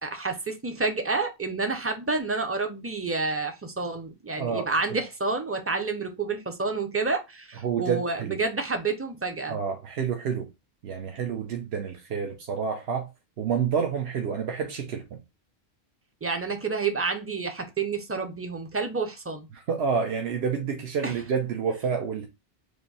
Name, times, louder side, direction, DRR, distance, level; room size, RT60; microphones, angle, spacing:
voice 1, 0.0-9.6 16.2-19.5 21.0-21.1, right 4 dB, 20° right, 0.3 m, -29 dB
voice 2, 7.6-8.4 9.5-10.5 10.8-13.1 13.4-15.0 19.5-22.3, right 6 dB, 85° right, 1.0 m, -28 dB
3.3 x 2.6 x 4.0 m
omnidirectional pair, 1.1 m